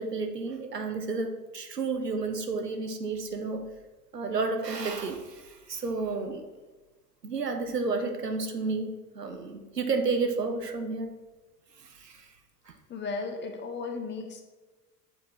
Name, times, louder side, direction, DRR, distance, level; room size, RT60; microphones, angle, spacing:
voice 1, 0.0-3.6 4.1-6.4 7.2-11.1 11.8-12.3, right 3 dB, 85° right, 5 dB, 0.7 m, -31 dB
voice 2, 12.9-14.4, left 4 dB, 25° left, 5 dB, 0.7 m, -35 dB
7.6 x 4.0 x 3.1 m, 1.2 s
figure-of-eight pair, 75°, 47 cm